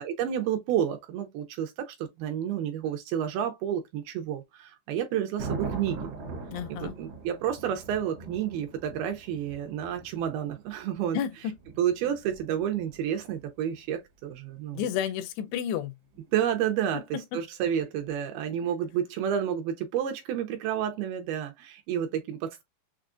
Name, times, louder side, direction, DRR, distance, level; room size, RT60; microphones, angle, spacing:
voice 1, 0.0-6.1 6.7-11.2 11.8-14.8 16.3-22.6, right 9 dB, 80° right, 2.4 m, -30 dB
Thunder, 5.4-13.4 16.2-16.5, right 4 dB, 60° right, 1.7 m, -41 dB
voice 2, 6.5-7.0 11.1-11.5 14.7-16.0, left 9 dB, 90° left, 2.8 m, -31 dB
6.6 x 2.3 x 2.4 m
omnidirectional pair, 4.7 m